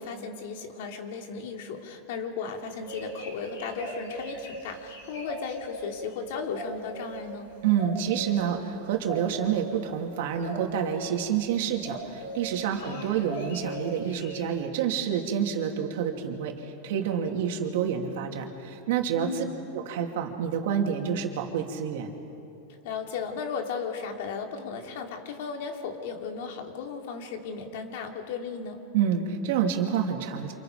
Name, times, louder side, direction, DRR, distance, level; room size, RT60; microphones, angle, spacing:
voice 1, 0.0-7.5 12.8-13.3 19.2-19.5 22.8-28.8, left 5 dB, 60° left, 3 dB, 2.8 m, -35 dB
sound 1, 2.6-5.8 6.5-7.2 7.8-8.3 9.0-9.6 10.4-11.0 11.8-12.4 12.7-14.5, right 1 dB, 85° left, 7.9 m, -39 dB
voice 2, 7.6-19.4 19.7-22.1 28.9-30.5, right 8 dB, 65° right, 2 dB, 2.9 m, -28 dB
29.5 x 27.5 x 5.2 m, 2.7 s
supercardioid pair, 155°, 0 cm